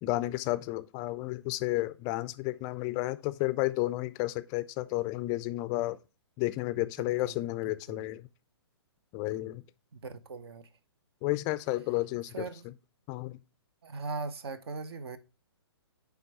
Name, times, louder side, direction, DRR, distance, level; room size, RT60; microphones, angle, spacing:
voice 1, 0.0-6.0 6.4-8.3 9.1-9.6 11.2-12.7 13.1-13.4, left 18 dB, 25° left, 0.4 m, -32 dB
voice 2, 10.0-10.7 12.3-12.6 13.8-15.2, right 4 dB, 65° right, 0.9 m, -38 dB
9.5 x 3.5 x 4.7 m
figure-of-eight pair, 125°, 14 cm